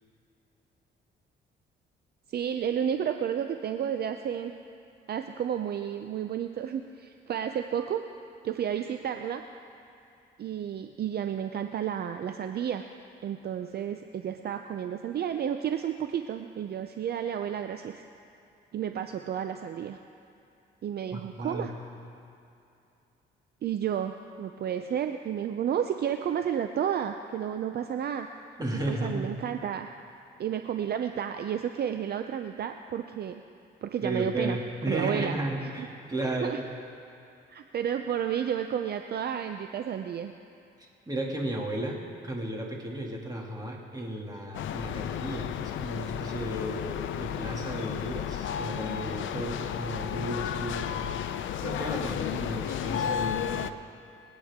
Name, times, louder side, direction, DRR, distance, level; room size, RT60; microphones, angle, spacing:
voice 1, 2.3-4.5 5.1-8.0 8.4-9.4 10.4-12.8 13.2-18.0 18.7-20.0 20.8-21.7 23.6-28.4 28.9-29.9 30.4-33.4 33.8-34.6 34.9-35.4 35.8-35.9 36.4-36.6 37.5-40.3, right 9 dB, 55° right, 7 dB, 0.6 m, -31 dB
voice 2, 21.1-21.7 28.6-29.4 34.0-36.6 40.8-51.2 51.6-53.5, right 1 dB, 20° right, -1 dB, 2.4 m, -34 dB
sound 1, 44.5-53.7, left 9 dB, 75° left, 0.6 m, -33 dB
26.5 x 8.9 x 3.7 m, 2.7 s
cardioid pair, 90°, 20 cm